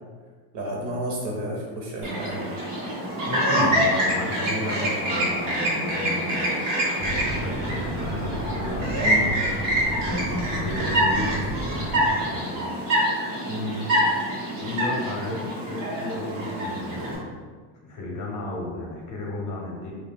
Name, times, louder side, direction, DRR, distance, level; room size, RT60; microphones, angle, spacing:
voice 1, 0.5-2.6 9.0-9.3 13.5-13.8, right 1 dB, 65° right, -2 dB, 1.0 m, -31 dB
Chirp tweet, 2.0-17.2, equal, 90° right, 1.0 m, -26 dB
voice 2, 3.3-6.5 7.0-9.0 10.5-12.7 14.5-17.4 17.8-19.9, left 1 dB, 40° left, -2 dB, 0.6 m, -33 dB
sound 1, 7.0-12.1, right 1 dB, 15° right, 0.5 m, -33 dB
2.4 x 2.1 x 3.4 m, 1.5 s
cardioid pair, 130°, 47 cm